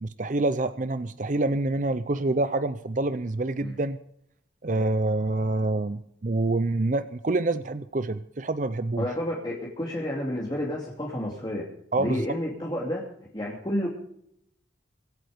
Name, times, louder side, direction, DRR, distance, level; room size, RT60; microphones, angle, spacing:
voice 1, 0.0-4.0 4.6-9.1 11.9-12.2, right 2 dB, 40° right, 13 dB, 0.6 m, -27 dB
voice 2, 9.0-11.6 12.0-13.1 13.3-13.9, left 1 dB, 25° left, -3 dB, 2.6 m, -30 dB
24.5 x 8.9 x 5.1 m, 0.72 s
head